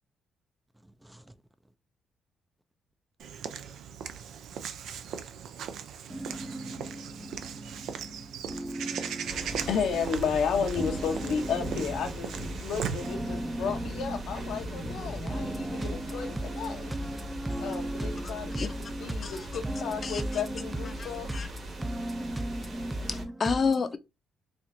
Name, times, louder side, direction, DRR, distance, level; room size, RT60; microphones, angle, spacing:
Walk footsteps / Bird vocalization bird call bird song, 3.2-13.1, right 8 dB, 75° right, 0.4 m, -38 dB
voice 1, 6.1-7.0 8.5-9.7 15.3-15.9 17.2-18.1 18.5-19.0 21.8-23.0, right 1 dB, 10° right, 0.4 m, -35 dB
voice 2, 8.5-12.3 12.6-17.0 17.6-18.7 19.0-21.3, left 6 dB, 75° left, 0.7 m, -33 dB
sound 1, 9.3-23.2, right 1 dB, 45° right, 1.5 m, -39 dB
voice 3, 23.0-24.0, left 5 dB, 40° left, 0.6 m, -29 dB
4.3 x 2.4 x 2.6 m
cardioid pair, 90°, 0 cm